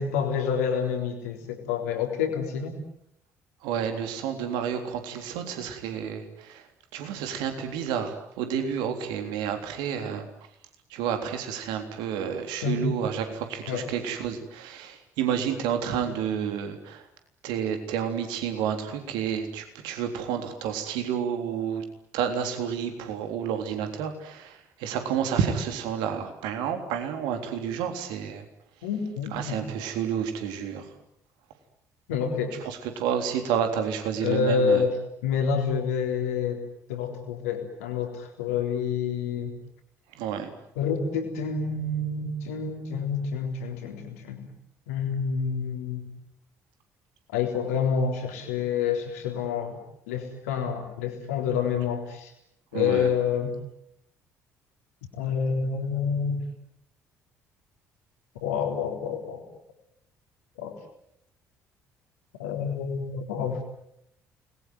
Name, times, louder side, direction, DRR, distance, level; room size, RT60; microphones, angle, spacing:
voice 1, 0.0-2.7 12.6-12.9 13.7-13.8 28.8-29.6 32.1-32.5 34.2-35.0 35.2-36.6 36.9-39.6 40.8-44.5 44.9-46.1 47.3-49.8 50.1-52.3 52.7-53.5 55.2-56.4 58.4-59.4 60.6-60.7 62.4-63.6, left 6 dB, 70° left, 3 dB, 3.8 m, -28 dB
voice 2, 3.6-10.3 10.9-17.1 17.4-21.8 22.1-28.5 29.3-30.9 32.6-34.8 40.1-40.5 52.7-53.1, right 8 dB, 65° right, 6 dB, 3.6 m, -30 dB
29.0 x 21.5 x 9.6 m, 0.77 s
figure-of-eight pair, 50°, 8 cm